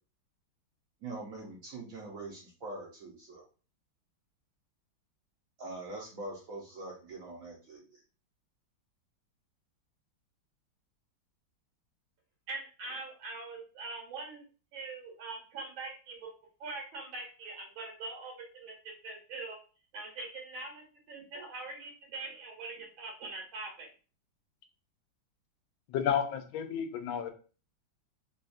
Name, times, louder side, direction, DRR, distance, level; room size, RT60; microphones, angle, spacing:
voice 1, 1.0-3.4 5.6-8.0, right 2 dB, 60° right, -3 dB, 0.9 m, -43 dB
voice 2, 12.5-14.4 14.7-16.3 16.6-19.6 19.9-23.9, right 3 dB, 80° right, 0 dB, 1.9 m, -43 dB
voice 3, 25.9-27.3, left 8 dB, 80° left, 7 dB, 1.3 m, -31 dB
4.1 x 2.3 x 2.5 m, 0.36 s
omnidirectional pair, 2.2 m